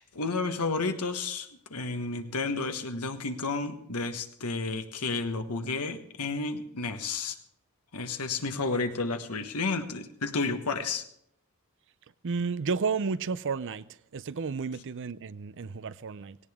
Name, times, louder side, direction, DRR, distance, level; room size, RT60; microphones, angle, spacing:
voice 1, 0.0-7.4 7.9-11.0, left 3 dB, 90° left, 1.4 m, -31 dB
voice 2, 12.2-13.8 14.1-16.4, right 5 dB, 55° right, 0.5 m, -32 dB
17.5 x 17.5 x 3.6 m
head